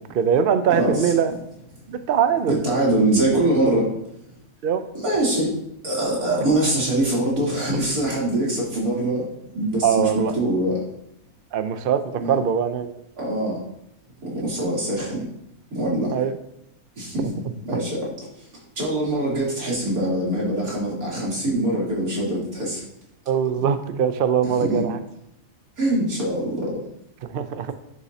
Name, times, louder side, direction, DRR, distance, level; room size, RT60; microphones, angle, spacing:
voice 1, 0.1-1.3 1.9-2.6 4.6-4.8 9.8-10.3 11.5-12.9 16.1-16.3 23.3-25.0 27.2-27.7, right 8 dB, 60° right, 10 dB, 0.6 m, -22 dB
voice 2, 0.7-1.1 2.5-3.9 4.9-5.5 5.8-9.3 9.5-10.8 12.2-12.4 13.2-13.6 14.2-15.2 15.7-16.2 17.0-17.3 17.6-18.1 18.4-18.5 18.8-22.8 24.6-24.9 25.8-26.8, right 1 dB, 80° right, -6 dB, 3.6 m, -23 dB
10.5 x 7.1 x 2.8 m, 0.78 s
omnidirectional pair, 1.5 m